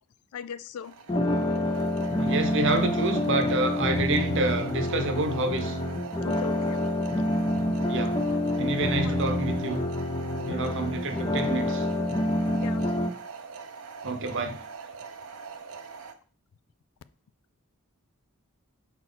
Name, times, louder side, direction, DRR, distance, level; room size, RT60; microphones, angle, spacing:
voice 1, 0.3-0.9 6.2-6.8 7.1-7.8 9.0-9.2 12.5-12.9, left 8 dB, 85° left, 15 dB, 0.3 m, -40 dB
sound 1, 0.8-16.1, right 5 dB, 85° right, 0.8 m, -42 dB
sound 2, 1.1-13.1, left 1 dB, 20° left, 0.6 m, -27 dB
voice 2, 2.2-5.8 7.9-8.1 8.6-9.8 10.4-11.9 14.0-14.6, right 2 dB, 60° right, 7 dB, 1.0 m, -28 dB
6.1 x 4.4 x 3.8 m, 0.41 s
head